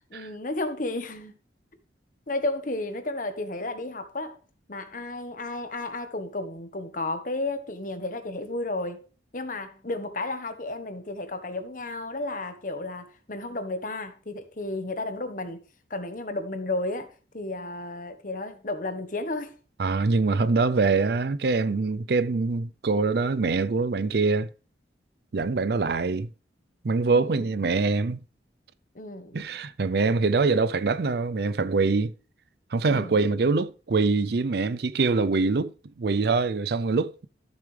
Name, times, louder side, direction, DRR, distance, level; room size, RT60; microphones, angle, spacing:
voice 1, 0.1-1.3 2.3-4.4 4.7-9.0 9.3-15.6 15.9-17.1 17.3-19.5 27.1-27.5 28.9-29.4 32.9-33.2, left 2 dB, 45° left, 1.2 m, -33 dB
voice 2, 19.8-24.5 25.3-26.3 26.8-28.2 29.3-32.1 32.7-35.7 36.0-37.3, right 4 dB, 60° right, 0.5 m, -24 dB
13.5 x 7.2 x 3.3 m
head